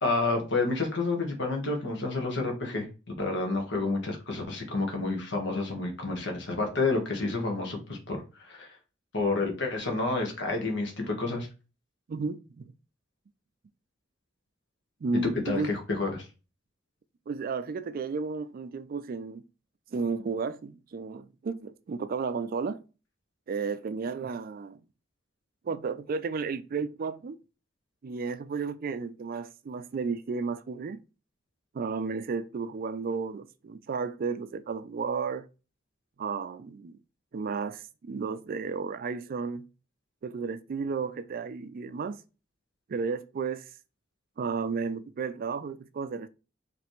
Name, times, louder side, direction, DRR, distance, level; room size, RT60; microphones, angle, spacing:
voice 1, 0.0-2.9 3.2-8.8 9.1-11.5 15.4-16.3, left 3 dB, 65° left, 1.4 m, -29 dB
voice 2, 12.1-12.7 15.0-15.7 17.3-19.5 19.9-22.8 23.5-24.8 25.6-27.4 28.0-31.0 31.7-35.5 36.2-37.0 37.3-39.7 40.2-42.2 42.9-43.7 44.4-46.3, right 5 dB, 50° right, 0.4 m, -33 dB
5.0 x 3.2 x 3.1 m
head